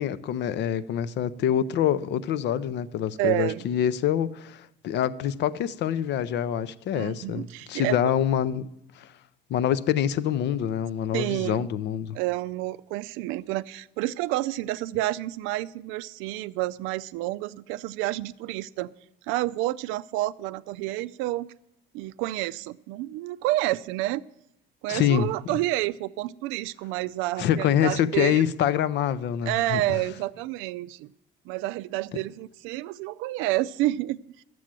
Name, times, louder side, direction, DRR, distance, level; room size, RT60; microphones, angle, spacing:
voice 1, 0.0-8.7 9.0-9.1 9.5-12.2 24.9-25.6 27.4-29.8, left 10 dB, 60° left, 0.6 m, -26 dB
voice 2, 3.2-3.7 7.0-8.0 11.1-11.7 12.1-18.9 19.3-21.5 21.9-24.2 24.8-28.5 29.5-31.1 31.5-34.4, right 16 dB, 90° right, 0.4 m, -29 dB
11.5 x 7.6 x 7.5 m
cardioid pair, 125°, 20 cm